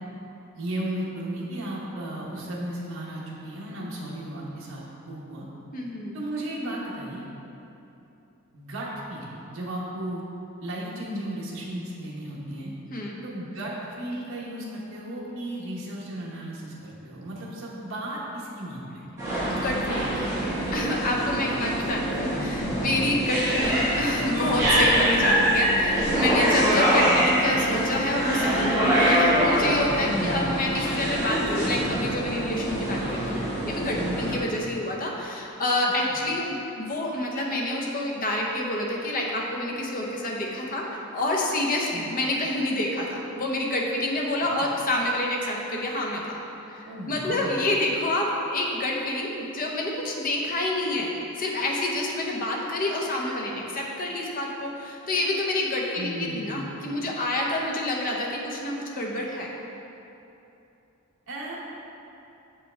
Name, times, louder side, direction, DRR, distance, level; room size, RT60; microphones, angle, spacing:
voice 1, 0.5-5.5 6.1-7.3 8.5-10.2 10.6-12.7 13.2-19.1 21.5-22.5 27.1-27.3 30.0-30.4 33.9-34.2 35.8-36.2 41.9-42.1 46.8-47.6 56.0-56.7 61.3-61.6, right 1 dB, 70° right, -6 dB, 1.0 m, -35 dB
voice 2, 5.7-6.2 12.9-13.2 19.5-20.3 20.7-33.3 33.6-46.4 46.7-51.1 51.4-59.5, left 1 dB, 40° left, -1 dB, 0.8 m, -28 dB
sound 1, 19.2-34.4, right 1 dB, 15° right, 1.4 m, -24 dB
6.9 x 5.5 x 3.3 m, 2.9 s
head